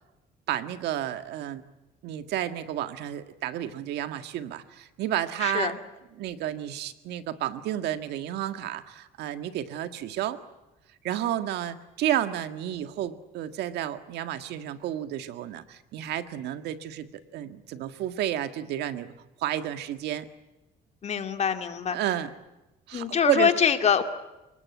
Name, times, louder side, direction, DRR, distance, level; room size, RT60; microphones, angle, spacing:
voice 1, 0.5-1.6 2.0-5.8 6.1-10.4 11.0-19.1 19.4-20.3 21.9-22.3 22.9-23.5, right 12 dB, 80° right, 10 dB, 1.7 m, -31 dB
voice 2, 5.4-5.7 21.0-22.0 22.9-24.0, left 7 dB, 40° left, 7 dB, 2.5 m, -24 dB
30.0 x 19.0 x 9.6 m, 0.99 s
cardioid pair, 110°, 17 cm